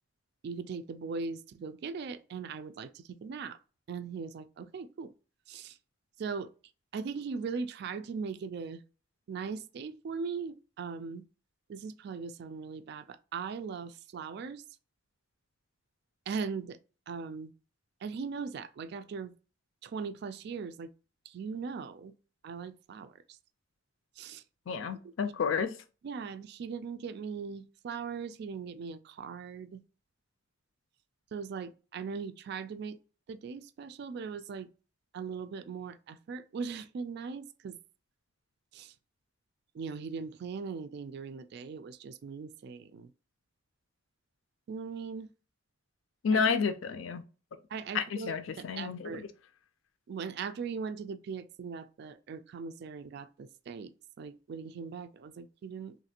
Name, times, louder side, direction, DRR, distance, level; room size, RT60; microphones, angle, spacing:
voice 1, 0.4-3.6 3.9-5.1 5.5-5.8 6.2-6.5 6.9-8.8 9.3-11.2 11.7-14.6 16.3-16.8 17.1-17.5 18.0-19.3 19.8-20.9 21.3-22.1 22.4-23.1 24.2-24.4 26.0-29.8 31.3-33.0 33.3-34.7 35.1-37.8 38.7-38.9 39.7-43.1 44.7-45.3 46.3-46.4 47.7-49.2 50.1-53.9 54.2-56.0, right 5 dB, 55° right, 0.3 m, -39 dB
voice 2, 24.7-25.7 46.2-47.2 47.9-49.3, left 5 dB, 75° left, 0.4 m, -30 dB
3.2 x 2.4 x 2.7 m
head